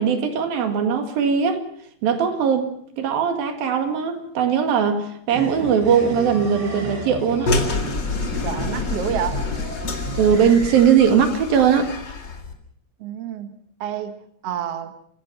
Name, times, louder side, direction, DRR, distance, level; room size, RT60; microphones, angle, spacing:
voice 1, 0.0-1.6 2.0-2.7 3.0-7.5 10.2-11.9, right 7 dB, 80° right, 6 dB, 3.8 m, -19 dB
sound 1, 5.3-10.8, right 1 dB, 25° right, 6.7 m, -33 dB
sound 2, 7.5-12.5, left 3 dB, 35° left, 2.2 m, -27 dB
voice 2, 8.4-9.5 13.0-15.0, right 9 dB, 55° right, 8 dB, 1.9 m, -29 dB
27.5 x 16.5 x 5.8 m, 0.64 s
omnidirectional pair, 4.1 m